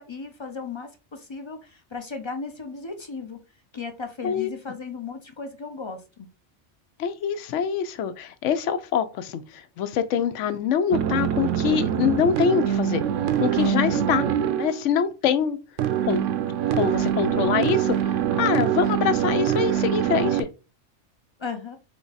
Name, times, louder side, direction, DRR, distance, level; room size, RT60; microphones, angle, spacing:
voice 1, 0.0-3.4 3.7-6.3 13.7-14.1 21.4-21.8, left 5 dB, 45° left, 0.4 m, -35 dB
voice 2, 7.0-13.0 13.4-14.2 14.6-15.6 16.0-16.3 16.7-20.5, left 7 dB, 80° left, 0.9 m, -24 dB
sound 1, 10.9-14.8 15.8-20.4, right 10 dB, 85° right, 0.9 m, -24 dB
3.8 x 3.5 x 3.9 m
omnidirectional pair, 1.3 m